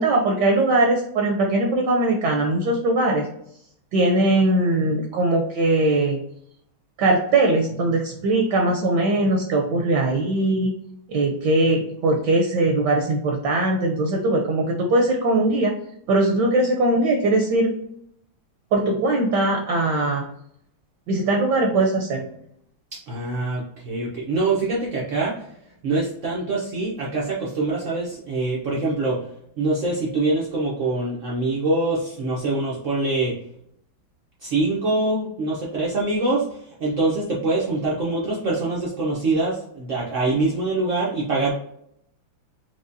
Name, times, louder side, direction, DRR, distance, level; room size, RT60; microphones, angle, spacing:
voice 1, 0.0-3.3 3.9-6.2 7.0-10.7 11.1-15.8 16.1-17.7 18.7-20.2 21.1-22.3, right 2 dB, 70° right, 2 dB, 1.0 m, -20 dB
voice 2, 23.1-25.4 25.8-29.2 29.6-33.3 34.4-41.5, right 2 dB, 90° right, -4 dB, 0.6 m, -24 dB
4.7 x 2.1 x 2.5 m, 0.73 s
omnidirectional pair, 2.2 m